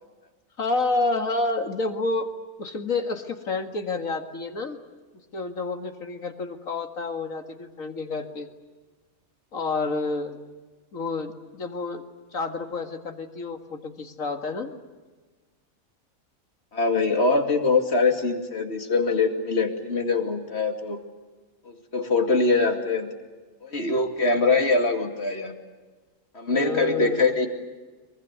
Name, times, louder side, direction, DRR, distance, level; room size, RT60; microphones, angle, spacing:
voice 1, 0.6-2.3 2.6-4.8 5.3-8.5 9.5-10.4 10.9-12.0 12.3-14.7 26.5-27.1, left 3 dB, 75° left, 6 dB, 2.3 m, -29 dB
voice 2, 16.7-21.0 21.6-23.1 23.6-25.5 26.3-27.5, left 3 dB, 50° left, 4 dB, 2.8 m, -23 dB
23.5 x 23.0 x 9.5 m, 1.3 s
omnidirectional pair, 1.4 m